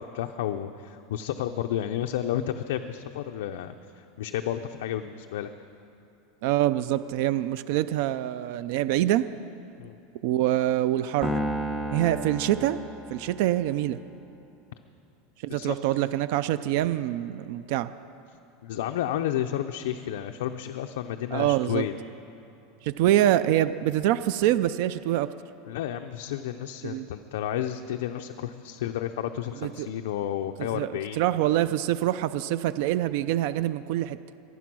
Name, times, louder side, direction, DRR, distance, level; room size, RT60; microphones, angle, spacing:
voice 1, 0.0-5.5 9.8-10.0 15.5-15.8 18.6-21.9 25.7-31.2, left 11 dB, 75° left, 6 dB, 0.6 m, -31 dB
voice 2, 6.4-9.2 10.2-11.4 11.9-12.8 13.1-14.0 15.4-17.9 21.3-21.8 22.8-25.3 26.8-27.1 29.6-29.9 30.7-30.9 31.2-34.2, right 13 dB, 50° right, 14 dB, 0.4 m, -25 dB
Piano, 11.2-13.6, equal, ahead, 1.1 m, -32 dB
24.0 x 9.4 x 6.2 m, 2.9 s
supercardioid pair, 170°, 0 cm